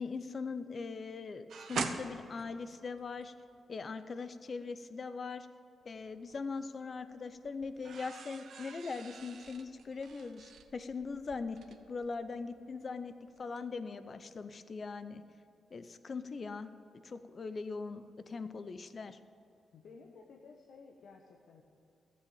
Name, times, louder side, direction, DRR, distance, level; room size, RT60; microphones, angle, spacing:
voice 1, 0.0-3.3 3.7-5.5 5.9-11.6 11.9-15.2 15.7-16.7 17.0-19.2, left 4 dB, 40° left, 11 dB, 0.7 m, -41 dB
sound 1, 1.5-3.6 5.8-6.6 7.0-13.0 13.3-13.6, right 6 dB, 70° right, 0.9 m, -44 dB
voice 2, 19.7-21.6, left 4 dB, 75° left, 1 dB, 1.1 m, -55 dB
14.0 x 7.1 x 8.9 m, 2.6 s
wide cardioid pair, 120°, 0 cm